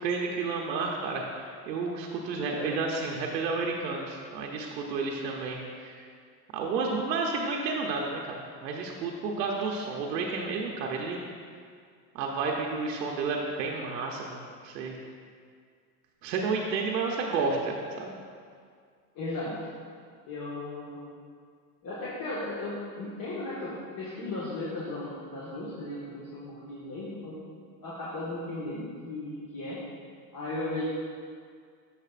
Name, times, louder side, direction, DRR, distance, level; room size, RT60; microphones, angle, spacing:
voice 1, 0.0-6.0 6.5-11.2 12.1-15.0 16.2-18.1, right 4 dB, 85° right, 0 dB, 0.8 m, -31 dB
voice 2, 2.4-2.7 19.1-19.5 20.3-21.0 21.8-27.4 27.8-29.8 30.3-30.8, left 2 dB, 45° left, -8 dB, 1.6 m, -36 dB
10.0 x 5.5 x 2.5 m, 2.1 s
hypercardioid pair, 85°, 49 cm